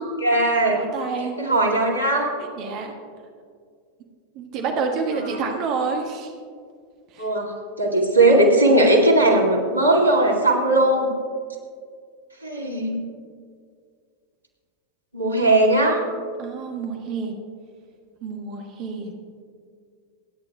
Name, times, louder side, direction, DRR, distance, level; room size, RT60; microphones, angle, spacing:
voice 1, 0.2-0.8 1.4-2.3 7.2-11.1 12.4-13.0 15.1-16.0, right 2 dB, 90° left, -1 dB, 2.3 m, -18 dB
voice 2, 0.7-1.3 2.6-2.9 4.3-6.3 7.1-7.3 16.4-17.3 18.2-19.1, right 4 dB, 40° right, 3 dB, 1.6 m, -28 dB
27.0 x 9.6 x 2.3 m, 2.1 s
figure-of-eight pair, 90°, 0 cm